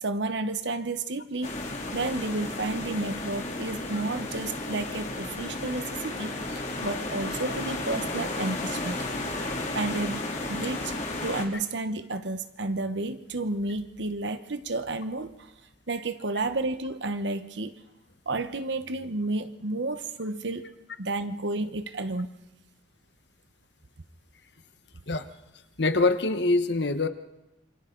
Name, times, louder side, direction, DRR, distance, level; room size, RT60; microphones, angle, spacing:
voice 1, 0.0-1.6 1.9-9.0 9.7-10.9 11.2-15.3 15.9-17.8 18.3-20.7 21.0-22.3, right 2 dB, 75° right, 11 dB, 1.0 m, -31 dB
sound 1, 1.4-11.4, left 2 dB, 40° left, 2.5 m, -33 dB
voice 2, 25.8-27.1, left 3 dB, 70° left, 9 dB, 1.2 m, -24 dB
27.5 x 24.0 x 3.9 m, 0.90 s
head